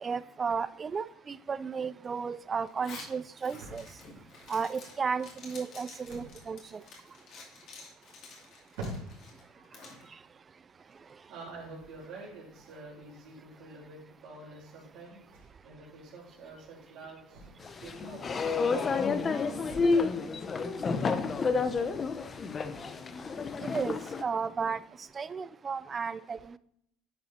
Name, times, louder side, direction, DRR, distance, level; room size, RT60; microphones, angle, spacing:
voice 1, 0.0-3.9 4.5-6.8 23.6-24.8 25.2-26.6, right 5 dB, 30° right, 17 dB, 0.4 m, -34 dB
sound 1, 2.6-21.5, right 1 dB, 80° right, 2.8 m, -51 dB
Zipper (clothing), 2.7-10.0, left 4 dB, 55° left, 2.5 m, -50 dB
voice 2, 9.5-10.0 11.3-15.2 15.6-18.4 20.4-20.6 22.7-22.9, right 3 dB, 65° right, -4 dB, 3.2 m, -48 dB
sound 2, 17.6-24.2, left 4 dB, 30° left, 0.6 m, -30 dB
10.5 x 4.3 x 4.2 m, 0.72 s
supercardioid pair, 105°, 0 cm